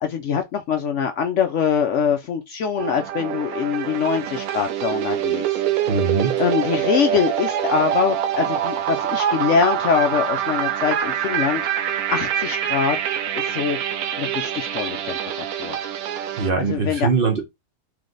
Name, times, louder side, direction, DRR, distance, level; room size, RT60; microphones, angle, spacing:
voice 1, 0.0-5.6 6.4-11.6 12.1-13.0 13.3-13.8 14.2-15.8 16.6-17.1, left 7 dB, 65° left, 0.8 m, -23 dB
sound 1, 2.8-16.5, right 10 dB, 75° right, 1.1 m, -25 dB
voice 2, 5.9-6.4 16.4-17.4, right 4 dB, 40° right, 1.0 m, -22 dB
3.3 x 3.1 x 3.8 m
omnidirectional pair, 1.6 m